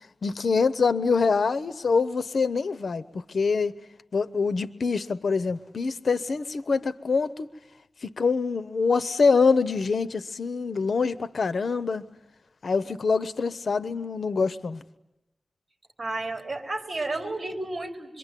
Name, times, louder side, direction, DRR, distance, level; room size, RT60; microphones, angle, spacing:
voice 1, 0.2-3.7 4.1-7.5 8.0-12.1 12.6-14.8, left 4 dB, 90° left, 0.9 m, -25 dB
voice 2, 16.0-18.2, right 2 dB, 50° right, 4.1 m, -32 dB
26.0 x 23.5 x 9.1 m
wide cardioid pair, 60°, 0 cm